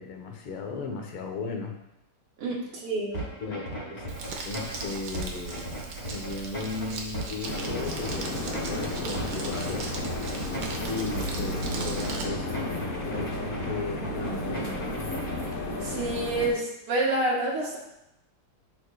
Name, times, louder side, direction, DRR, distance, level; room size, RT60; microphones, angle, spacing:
voice 1, 0.0-1.7 3.4-4.1 4.4-5.7 6.1-10.0 10.9-15.1, left 4 dB, 85° left, 3 dB, 1.9 m, -36 dB
voice 2, 2.4-3.2 15.8-17.8, right 2 dB, 80° right, -3 dB, 2.3 m, -28 dB
sound 1, 3.1-15.5, equal, 20° left, 2.3 m, -37 dB
Crumpling crinkling, 4.1-12.2, right 4 dB, 60° right, 1.3 m, -38 dB
sound 2, 7.4-16.5, left 1 dB, 55° left, 0.5 m, -33 dB
11.5 x 4.3 x 2.3 m, 0.86 s
omnidirectional pair, 2.4 m